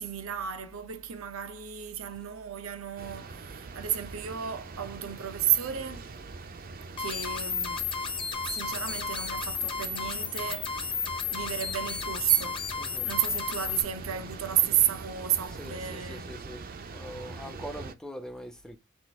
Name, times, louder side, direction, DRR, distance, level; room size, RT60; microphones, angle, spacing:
voice 1, 0.0-6.1 7.0-7.9 8.4-11.0 11.3-12.7 13.0-16.3, right 10 dB, 90° right, 0.7 m, -32 dB
sound 1, 3.0-17.9, right 3 dB, 45° right, 0.5 m, -43 dB
sound 2, 7.0-13.8, left 5 dB, 25° left, 0.9 m, -33 dB
voice 2, 12.7-13.1 15.6-16.6 16.9-18.8, equal, 5° left, 0.6 m, -42 dB
6.2 x 2.4 x 3.4 m
head